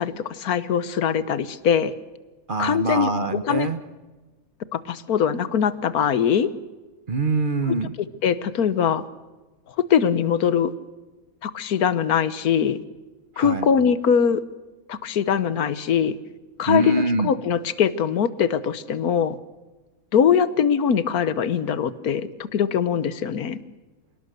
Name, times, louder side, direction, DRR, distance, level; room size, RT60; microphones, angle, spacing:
voice 1, 0.0-1.9 2.6-3.1 3.4-3.7 4.7-6.5 8.2-9.0 9.8-10.7 11.4-12.8 13.4-14.4 14.9-16.2 16.6-19.4 20.1-23.6, left 7 dB, 80° left, 15 dB, 1.5 m, -22 dB
voice 2, 2.5-3.8 7.1-7.9 13.3-13.7 16.6-17.3, right 3 dB, 35° right, 11 dB, 1.2 m, -24 dB
27.0 x 18.5 x 6.7 m, 1.2 s
omnidirectional pair, 1.5 m